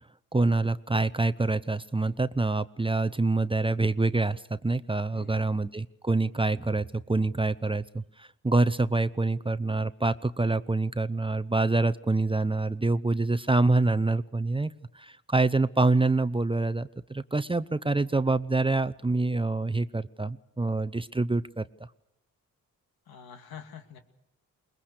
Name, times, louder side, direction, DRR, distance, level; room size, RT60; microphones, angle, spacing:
voice 1, 0.3-21.6, right 2 dB, 15° right, 13 dB, 0.7 m, -26 dB
voice 2, 5.1-5.6 23.1-24.0, left 7 dB, 80° left, 6 dB, 2.3 m, -46 dB
22.5 x 20.0 x 6.7 m, 0.90 s
supercardioid pair, 45°, 36 cm